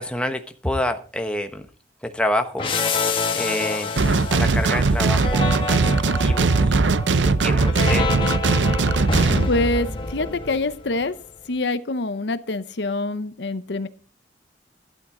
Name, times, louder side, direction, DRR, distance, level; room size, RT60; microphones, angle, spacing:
voice 1, 0.0-1.6 2.0-2.7 3.3-3.9 4.3-6.8 7.2-8.1, left 1 dB, 5° left, 6 dB, 1.1 m, -27 dB
sound 1, 2.6-11.1, left 3 dB, 30° left, 1.7 m, -27 dB
sound 2, 4.0-9.5, right 3 dB, 85° right, 0.6 m, -19 dB
voice 2, 9.5-11.1 11.5-13.9, left 2 dB, 75° left, 13 dB, 0.8 m, -25 dB
12.0 x 12.0 x 3.8 m, 0.40 s
head